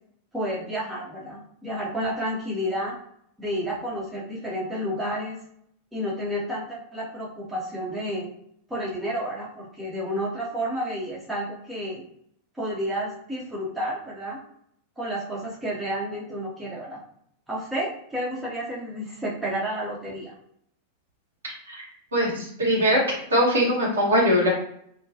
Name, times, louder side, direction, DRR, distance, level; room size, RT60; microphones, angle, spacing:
voice 1, 0.3-2.9 3.4-5.4 5.9-8.3 8.7-12.0 12.6-14.4 15.0-17.0 17.5-20.3, equal, 10° right, -4 dB, 0.7 m, -30 dB
voice 2, 21.4-21.8 22.1-24.5, equal, 70° right, -4 dB, 1.0 m, -22 dB
2.3 x 2.2 x 2.7 m, 0.70 s
figure-of-eight pair, 90°, 0 cm